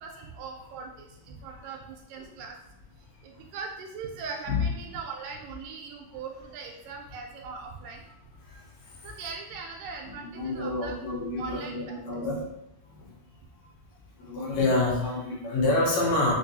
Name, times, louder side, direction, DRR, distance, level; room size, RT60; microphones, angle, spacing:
voice 1, 0.0-2.6 3.2-8.0 9.0-11.0 11.4-12.0, right 5 dB, 80° right, 2 dB, 2.0 m, -40 dB
voice 2, 10.1-12.4 13.0-13.1 14.2-16.3, left 2 dB, 65° left, -4 dB, 1.9 m, -27 dB
5.3 x 2.2 x 2.6 m, 0.83 s
omnidirectional pair, 3.8 m